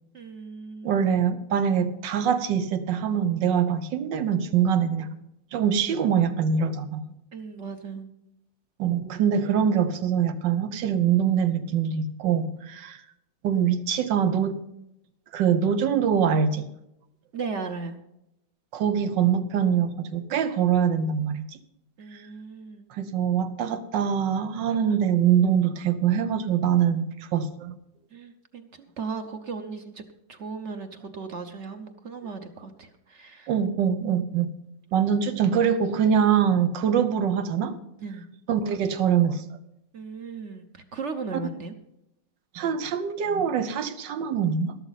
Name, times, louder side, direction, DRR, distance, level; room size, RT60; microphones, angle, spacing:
voice 1, 0.1-1.0 7.3-8.1 17.3-18.0 22.0-22.9 28.1-30.0 30.3-33.5 38.0-38.3 39.9-41.7, right 4 dB, 50° right, 7 dB, 1.0 m, -36 dB
voice 2, 0.8-5.1 5.5-7.0 8.8-13.0 13.4-14.6 15.3-16.7 18.7-21.5 22.1-22.2 22.9-27.8 33.5-34.5 34.9-37.7 38.5-39.4 42.5-44.8, right 8 dB, 85° right, 10 dB, 1.6 m, -24 dB
13.0 x 12.0 x 4.0 m, 0.85 s
omnidirectional pair, 1.9 m